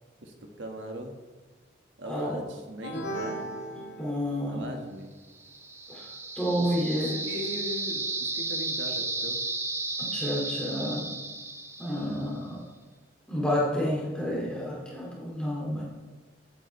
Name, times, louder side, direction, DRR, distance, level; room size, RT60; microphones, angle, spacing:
voice 1, 0.2-1.1 2.0-3.4 4.5-5.1 6.6-9.4 10.0-10.2, equal, 70° right, 3 dB, 1.6 m, -39 dB
voice 2, 2.0-2.4 4.0-4.7 5.9-6.1 6.4-7.2 10.0-11.1 11.8-12.6 13.3-15.8, equal, 5° left, -5 dB, 2.3 m, -30 dB
sound 1, 2.8-4.7, right 1 dB, 65° left, 1.8 m, -37 dB
sound 2, 5.4-12.3, right 3 dB, 15° right, 0.7 m, -34 dB
15.5 x 8.6 x 3.3 m, 1.3 s
head